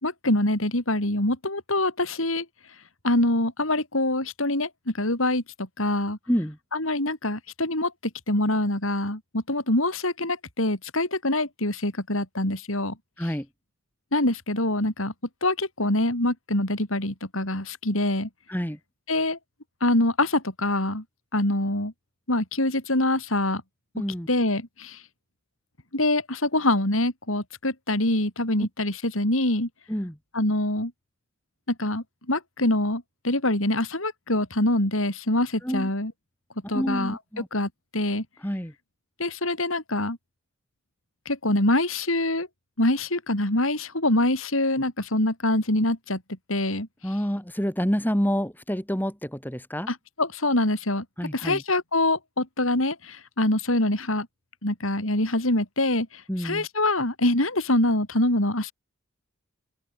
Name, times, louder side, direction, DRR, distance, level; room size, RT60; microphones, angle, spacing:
voice 1, 0.0-2.5 3.0-6.2 6.7-7.9 8.3-12.9 14.1-15.1 15.4-18.3 19.1-19.4 19.8-21.0 21.3-21.9 22.3-23.6 24.3-25.0 25.9-29.7 30.3-30.9 31.7-36.1 36.7-38.2 39.2-40.2 41.3-42.5 42.8-46.2 46.5-46.9 49.9-51.0 51.3-54.3 54.6-56.1 56.4-58.7, left 1 dB, 75° left, 6.1 m, -25 dB
voice 2, 23.9-24.3 29.9-30.2 35.6-35.9 36.7-37.5 38.4-38.7 47.0-49.9 51.2-51.6 56.3-56.7, equal, 10° left, 5.1 m, -28 dB
open air
head